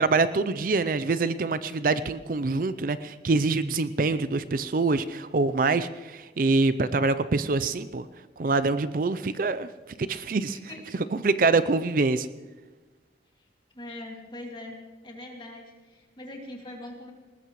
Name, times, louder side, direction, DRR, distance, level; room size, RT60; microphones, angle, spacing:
voice 1, 0.0-8.1 8.4-9.7 10.0-10.6 11.2-12.3, right 3 dB, 50° right, 13 dB, 0.5 m, -25 dB
voice 2, 10.5-11.0 13.7-14.8 15.0-17.1, left 1 dB, 25° left, 1 dB, 2.2 m, -42 dB
20.0 x 20.0 x 3.1 m, 1.3 s
head